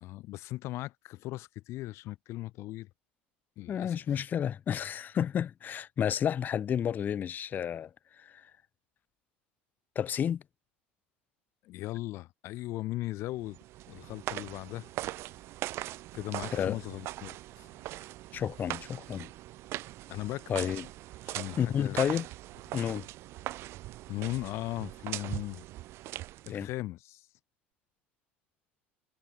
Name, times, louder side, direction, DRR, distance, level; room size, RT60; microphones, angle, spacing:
voice 1, 0.0-2.9 3.6-4.0 11.6-13.6 13.9-14.9 16.1-17.7 20.1-20.5 21.3-22.0 24.1-25.6 26.5-27.3, left 17 dB, 50° left, 1.2 m, -38 dB
voice 2, 3.7-7.9 8.2-8.5 10.0-10.4 16.5-16.8 18.3-19.3 20.5-20.9 21.6-22.3 22.7-23.0 26.5-26.7, left 9 dB, 30° left, 0.4 m, -31 dB
sound 1, 13.4-26.7, right 16 dB, 45° right, 0.5 m, -41 dB
figure-of-eight pair, 65°, 6 cm